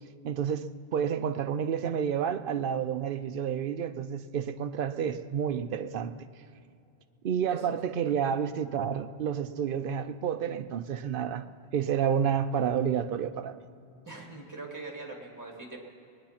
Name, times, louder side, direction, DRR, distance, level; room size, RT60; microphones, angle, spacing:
voice 1, 0.2-6.1 7.2-11.5 11.7-13.6, right 8 dB, 60° right, 11 dB, 0.8 m, -30 dB
voice 2, 14.1-15.8, right 3 dB, 15° right, 0 dB, 2.1 m, -42 dB
21.5 x 10.0 x 5.8 m, 2.6 s
omnidirectional pair, 1.1 m